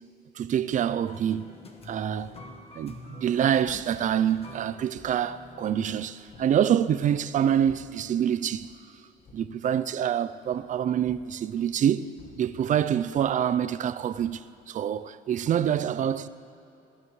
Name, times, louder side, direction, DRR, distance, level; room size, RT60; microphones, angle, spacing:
voice 1, 0.3-1.5 1.9-2.4 2.8-8.7 9.3-12.1 12.4-16.3, right 9 dB, 50° right, 0.5 m, -26 dB
sound 1, 1.1-6.6, left 2 dB, 35° left, 1.4 m, -47 dB
sound 2, 1.8-2.6 3.0-6.6 7.0-8.1 8.5-8.8 9.1-9.5 10.4-13.9 14.1-14.4, left 4 dB, 55° left, 1.7 m, -56 dB
22.0 x 15.0 x 3.2 m
cardioid pair, 110°, 17 cm